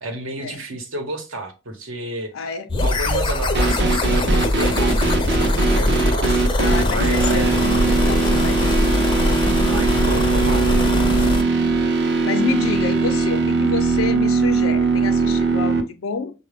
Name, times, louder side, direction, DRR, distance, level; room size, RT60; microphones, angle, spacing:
voice 1, 0.0-2.3 2.8-7.6 9.7-10.8, right 2 dB, 75° right, 1.0 m, -31 dB
voice 2, 2.3-2.7 6.6-9.0 12.2-16.3, left 6 dB, 85° left, 0.4 m, -28 dB
sound 1, 2.7-11.4, left 1 dB, 20° left, 0.4 m, -21 dB
sound 2, 3.5-15.8, right 4 dB, 50° right, 0.6 m, -20 dB
6.3 x 2.2 x 3.3 m
head